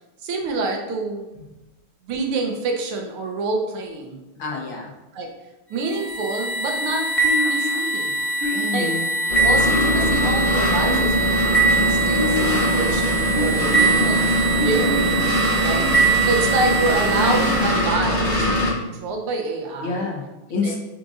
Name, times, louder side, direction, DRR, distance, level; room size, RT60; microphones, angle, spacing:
voice 1, 0.2-1.3 2.1-4.2 5.1-5.3 5.7-7.1 7.5-8.1 8.7-8.9 9.4-20.0 20.6-20.8, right 3 dB, 80° right, 2 dB, 1.8 m, -27 dB
voice 2, 4.4-4.9 8.5-9.1 19.8-20.8, left 4 dB, 65° left, -2 dB, 1.9 m, -28 dB
sound 1, 5.8-17.9, right 4 dB, 50° left, 0.5 m, -23 dB
sound 2, 7.2-7.8 8.4-8.9 9.7-10.4 10.8-11.5 12.1-12.8 13.3-13.9 14.6-15.2 15.8-16.5, left 1 dB, 45° right, 2.1 m, -28 dB
sound 3, 9.3-18.7, left 1 dB, 30° left, 0.9 m, -22 dB
7.7 x 5.1 x 2.6 m, 1.0 s
omnidirectional pair, 2.4 m